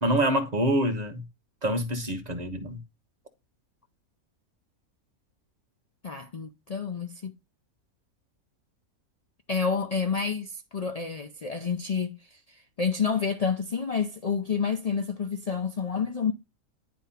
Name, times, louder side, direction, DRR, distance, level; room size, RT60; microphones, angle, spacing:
voice 1, 0.0-1.2 1.6-2.8, right 1 dB, 30° right, 1.3 m, -26 dB
voice 2, 6.0-7.3 9.5-16.3, left 6 dB, 75° left, 0.3 m, -29 dB
10.5 x 3.6 x 5.5 m
omnidirectional pair, 1.5 m